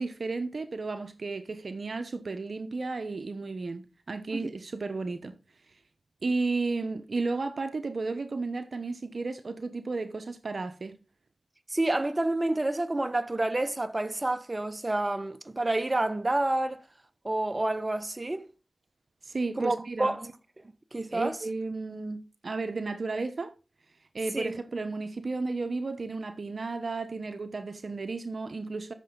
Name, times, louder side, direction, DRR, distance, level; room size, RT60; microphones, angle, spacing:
voice 1, 0.0-5.3 6.2-11.0 19.2-20.1 21.1-23.5 24.1-28.9, right 3 dB, 70° right, 1.0 m, -33 dB
voice 2, 11.7-16.8 17.2-18.4 19.5-20.3 20.9-21.4 24.3-24.6, right 2 dB, 35° right, 1.3 m, -29 dB
13.0 x 6.8 x 4.0 m
cardioid pair, 40°, 0 cm